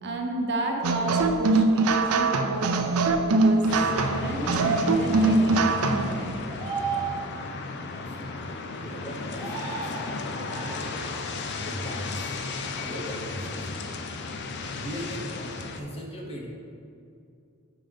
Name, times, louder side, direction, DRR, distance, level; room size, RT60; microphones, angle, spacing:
voice 1, 0.0-2.7 3.3-3.6 3.9-6.3, right 1 dB, 55° right, 1 dB, 0.9 m, -31 dB
sound 1, 0.8-6.2, right 3 dB, 85° right, 0.5 m, -23 dB
sound 2, 1.8-2.3 5.2-5.6 6.5-7.6 9.2-10.1 10.5-11.0 12.7-12.9, right 5 dB, 20° right, 1.1 m, -35 dB
sound 3, 3.7-15.8, left 3 dB, 55° left, 0.5 m, -35 dB
voice 2, 7.9-11.0 11.5-12.4 12.8-13.9 14.7-16.5, equal, 30° left, -1 dB, 0.9 m, -39 dB
5.4 x 5.1 x 5.3 m, 2.5 s
head